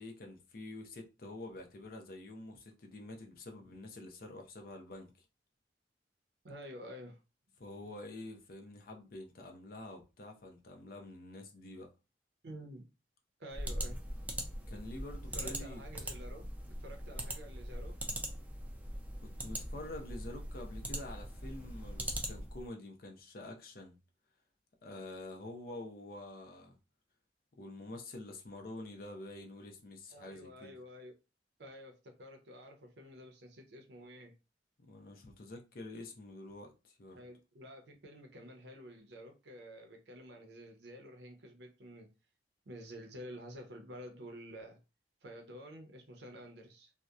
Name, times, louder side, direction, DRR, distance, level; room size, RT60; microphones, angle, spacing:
voice 1, 0.0-5.1 7.6-11.9 14.7-15.8 19.2-24.0 24.8-26.8 27.6-30.7 34.8-37.2, left 2 dB, 55° left, 0.5 m, -47 dB
voice 2, 6.4-7.2 12.4-12.9 13.4-14.0 15.3-16.5 16.8-18.0 30.1-31.1 31.6-34.4 37.1-42.1 42.7-44.8 45.2-46.9, equal, 70° right, 0.5 m, -50 dB
sound 1, 13.5-22.7, right 1 dB, 10° right, 0.3 m, -41 dB
2.7 x 2.0 x 2.3 m
head